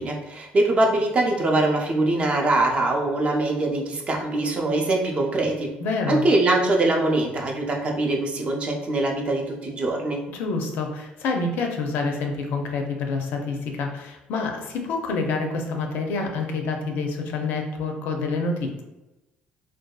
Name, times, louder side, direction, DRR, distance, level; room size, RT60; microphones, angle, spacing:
voice 1, 0.0-5.7 6.1-10.2, right 2 dB, 35° right, 1 dB, 0.5 m, -23 dB
voice 2, 5.8-6.2 10.3-18.8, left 3 dB, 75° left, 3 dB, 0.4 m, -27 dB
2.6 x 2.3 x 2.3 m, 0.98 s
cardioid pair, 105°, 3 cm